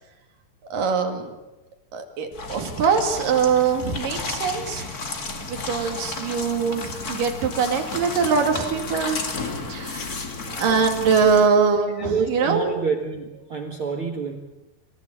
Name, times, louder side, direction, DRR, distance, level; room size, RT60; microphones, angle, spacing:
voice 1, 0.7-1.3 1.9-4.9 5.5-9.2 9.7-10.1 10.5-12.6, right 5 dB, 55° right, 4 dB, 3.5 m, -22 dB
sound 1, 2.3-11.5, left 3 dB, 45° left, 1.1 m, -33 dB
voice 2, 9.8-10.2 11.9-14.4, right 5 dB, 80° right, 2 dB, 1.2 m, -28 dB
26.0 x 14.5 x 8.6 m, 1.1 s
omnidirectional pair, 5.1 m